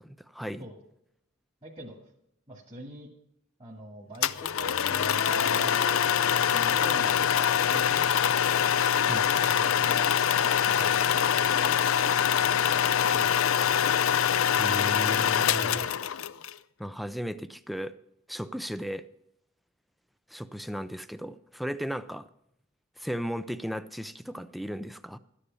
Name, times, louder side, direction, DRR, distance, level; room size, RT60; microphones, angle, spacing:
voice 1, 0.0-0.7 9.1-9.3 14.6-15.9 16.8-17.9 18.3-19.1 20.3-22.3 23.0-25.2, equal, ahead, 12 dB, 0.4 m, -35 dB
voice 2, 1.6-2.0 2.5-3.1 3.6-7.9 9.4-10.1 10.4-13.8 15.7-15.9, right 1 dB, 30° right, -4 dB, 2.1 m, -45 dB
sound 1, 4.2-16.5, left 8 dB, 80° left, 0.5 m, -24 dB
13.5 x 10.0 x 5.4 m, 0.77 s
head